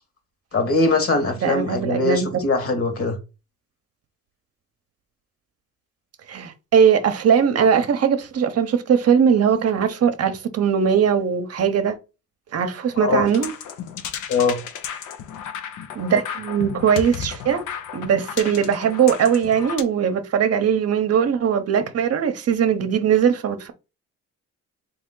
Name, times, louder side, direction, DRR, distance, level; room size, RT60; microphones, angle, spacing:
voice 1, 0.5-3.2 12.9-13.3 14.3-14.6, left 3 dB, 50° left, 1.5 m, -21 dB
voice 2, 1.4-2.3 6.3-12.0 12.5-13.5 16.0-17.6 17.9-23.7, right 7 dB, 55° right, 0.8 m, -20 dB
sound 1, 13.3-19.8, left 8 dB, 80° left, 0.7 m, -34 dB
3.6 x 3.0 x 3.7 m
cardioid pair, 90°, 30 cm